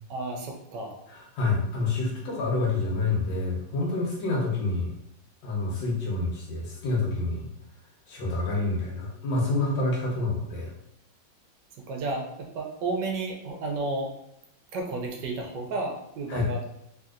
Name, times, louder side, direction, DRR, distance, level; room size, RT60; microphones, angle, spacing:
voice 1, 0.1-1.0 11.9-14.1 14.7-16.6, right 2 dB, 75° right, 1 dB, 1.3 m, -32 dB
voice 2, 1.1-4.9 5.4-7.5 8.1-10.7 16.3-16.5, left 3 dB, 80° left, -2 dB, 1.5 m, -28 dB
3.4 x 2.7 x 2.4 m, 0.79 s
omnidirectional pair, 2.0 m